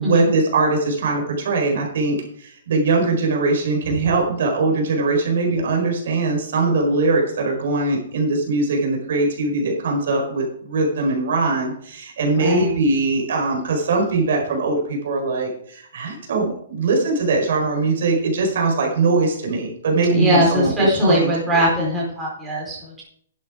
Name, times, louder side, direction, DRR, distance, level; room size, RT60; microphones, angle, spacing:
voice 1, 0.0-21.6, right 3 dB, 60° right, 0 dB, 4.5 m, -21 dB
voice 2, 12.3-12.7 20.1-23.0, equal, 10° right, -5 dB, 4.3 m, -20 dB
11.5 x 8.1 x 4.9 m, 0.64 s
hypercardioid pair, 155°, 0 cm